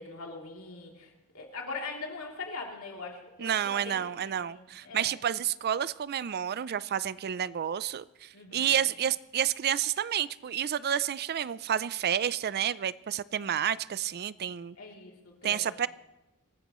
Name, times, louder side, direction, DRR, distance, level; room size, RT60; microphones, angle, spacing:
voice 1, 0.0-5.1 8.3-8.9 14.8-15.9, left 3 dB, 70° left, 0 dB, 3.0 m, -42 dB
voice 2, 3.4-14.8 15.4-15.9, right 9 dB, 45° right, 18 dB, 0.4 m, -30 dB
26.0 x 13.5 x 3.1 m, 1.0 s
head